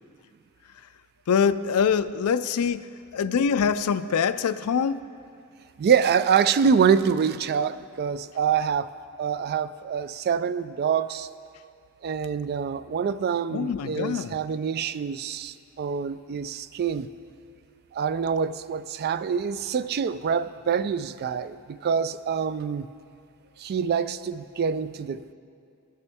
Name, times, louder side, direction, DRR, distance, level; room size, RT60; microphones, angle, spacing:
voice 1, 1.3-5.1 13.5-14.3, left 6 dB, 80° left, 14 dB, 0.4 m, -24 dB
voice 2, 5.8-8.9 9.2-11.3 12.0-17.1 17.9-22.9 23.6-25.3, right 7 dB, 45° right, 14 dB, 0.3 m, -25 dB
19.5 x 6.8 x 3.5 m, 2.5 s
head